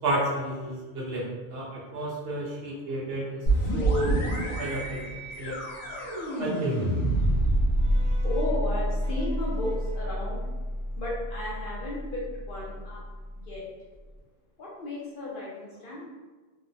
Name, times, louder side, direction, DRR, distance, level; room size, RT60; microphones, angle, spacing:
voice 1, 0.0-3.4 3.7-4.2 4.6-5.1 5.4-5.5 6.4-6.9 7.8-8.2, right 1 dB, 65° right, -4 dB, 0.8 m, -31 dB
sound 1, 3.5-13.0, right 1 dB, 85° left, 1.0 m, -28 dB
voice 2, 8.2-10.4 11.0-13.0 13.5-13.6 14.6-16.1, left 1 dB, 60° left, -5 dB, 0.6 m, -34 dB
2.8 x 2.0 x 2.6 m, 1.3 s
omnidirectional pair, 1.2 m